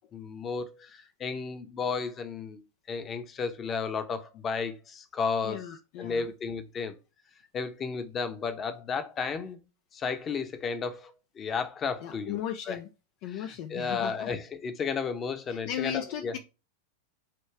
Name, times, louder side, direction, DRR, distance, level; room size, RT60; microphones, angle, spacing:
voice 1, 0.1-2.6 2.9-5.6 6.0-6.9 7.5-9.6 9.9-12.4 12.7-12.8 13.3-13.4 13.7-16.4, left 5 dB, 25° left, 1.1 m, -33 dB
voice 2, 5.4-6.3 12.0-12.9 13.2-14.3 15.5-16.4, left 10 dB, 45° left, 0.6 m, -36 dB
9.2 x 3.1 x 4.6 m
figure-of-eight pair, 90°, 0 cm